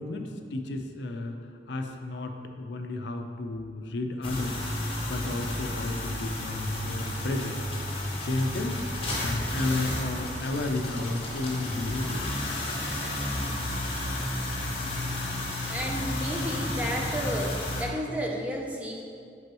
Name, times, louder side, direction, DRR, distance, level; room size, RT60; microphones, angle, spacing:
voice 1, 0.0-1.4 1.7-7.6 8.2-8.9 9.2-12.3, left 2 dB, 70° left, 5 dB, 0.4 m, -32 dB
sound 1, 4.2-17.8, left 1 dB, 30° left, 0.9 m, -32 dB
voice 2, 15.5-19.0, equal, 10° right, 0 dB, 0.5 m, -32 dB
6.2 x 5.3 x 3.0 m, 2.3 s
head